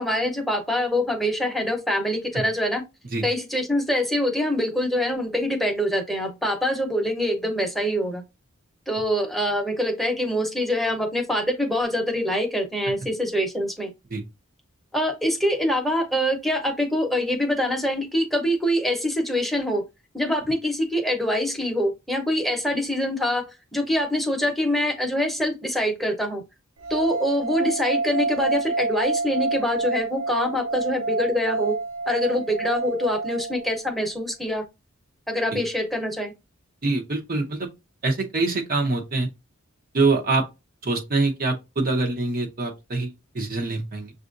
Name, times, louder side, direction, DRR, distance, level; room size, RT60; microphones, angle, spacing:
voice 1, 0.0-2.8 3.2-8.2 8.9-13.9 14.9-19.8 20.1-23.4 23.7-26.4 26.9-31.8 32.1-34.6 35.3-36.3, equal, ahead, 0.9 m, -24 dB
sound 1, 26.8-33.9, right 3 dB, 80° right, 0.6 m, -28 dB
voice 2, 36.8-37.7 38.0-39.3 39.9-40.5 40.8-44.1, right 3 dB, 45° right, 0.9 m, -24 dB
6.8 x 2.5 x 2.6 m
head